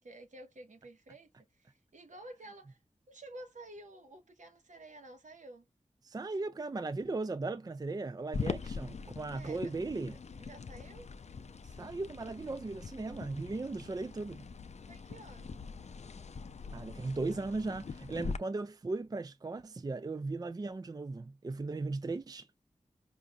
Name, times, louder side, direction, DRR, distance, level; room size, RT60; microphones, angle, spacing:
voice 1, 0.0-2.8 3.1-5.7 9.3-9.7 10.4-11.1 14.8-15.6, right 1 dB, 75° right, 1.2 m, -51 dB
voice 2, 6.0-10.2 11.8-14.5 16.7-22.5, right 3 dB, 30° right, 0.4 m, -37 dB
sound 1, 8.3-18.4, left 5 dB, 60° left, 0.4 m, -43 dB
5.1 x 2.6 x 2.3 m
wide cardioid pair, 75°, 13 cm